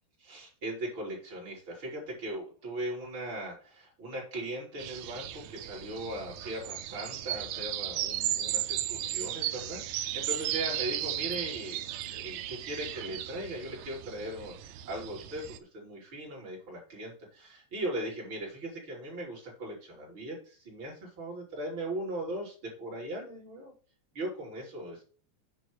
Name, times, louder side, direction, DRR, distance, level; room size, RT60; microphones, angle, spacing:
voice 1, 0.2-11.8 12.1-23.7 24.1-25.0, right 1 dB, 35° right, -2 dB, 3.9 m, -39 dB
sound 1, 4.8-15.6, right 12 dB, 80° right, 1.6 m, -35 dB
9.3 x 3.6 x 6.3 m, 0.41 s
omnidirectional pair, 4.0 m